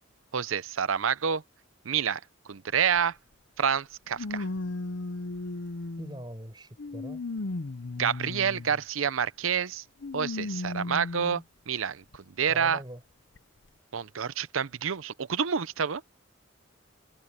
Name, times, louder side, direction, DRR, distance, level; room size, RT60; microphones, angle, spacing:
voice 1, 0.3-1.4 1.8-2.2 2.5-3.2 3.6-4.5 8.0-9.8 10.1-12.8 13.9-16.0, right 7 dB, 90° right, 0.7 m, -28 dB
sound 1, 3.0-3.1 4.2-6.2 6.8-8.8 10.0-11.4 12.1-12.2 13.4-13.5, left 2 dB, 65° left, 0.7 m, -35 dB
voice 2, 6.0-7.2 12.5-13.0, right 1 dB, 20° right, 5.8 m, -42 dB
head